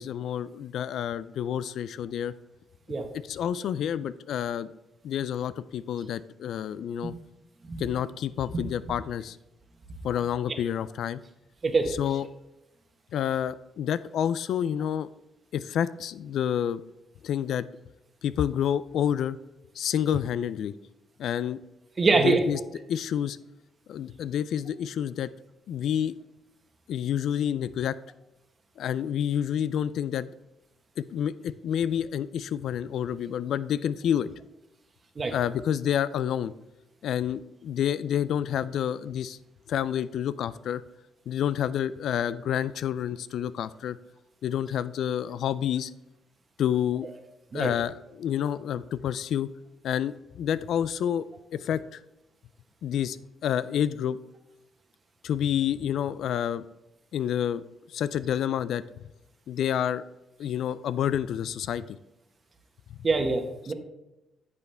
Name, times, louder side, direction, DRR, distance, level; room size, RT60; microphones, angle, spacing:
voice 1, 0.0-2.3 3.3-4.7 5.0-7.1 7.8-9.4 10.0-11.2 11.9-12.3 13.1-15.1 15.5-16.8 17.2-17.7 18.2-19.4 19.8-20.7 21.2-21.6 22.2-22.6 22.9-23.4 23.9-25.3 25.7-26.2 26.9-28.0 28.8-30.3 31.0-34.3 35.3-36.5 37.0-39.4 39.7-40.8 41.3-44.0 44.4-45.9 46.6-47.1 47.5-49.5 49.8-51.3 51.5-52.0 52.8-53.2 53.4-54.2 55.2-56.7 57.1-57.6 57.9-58.8 59.5-60.0 60.4-62.0, left 9 dB, 70° left, 16 dB, 0.3 m, -28 dB
voice 2, 22.0-22.4 35.2-35.3 47.5-47.7 63.0-63.7, right 3 dB, 35° right, 5 dB, 1.2 m, -24 dB
9.6 x 7.0 x 3.4 m, 0.94 s
cardioid pair, 90°, 0 cm